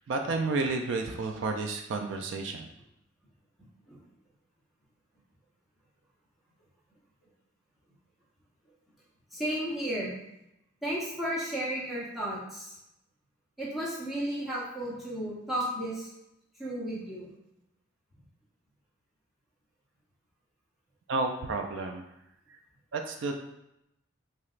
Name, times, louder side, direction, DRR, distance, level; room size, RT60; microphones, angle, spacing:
voice 1, 0.1-2.7 21.1-22.0 22.9-23.3, right 3 dB, 65° right, 4 dB, 0.3 m, -31 dB
voice 2, 9.3-10.2 10.8-12.8 13.6-16.1 16.6-17.3, right 1 dB, ahead, -8 dB, 0.7 m, -33 dB
3.1 x 2.8 x 2.4 m, 0.84 s
head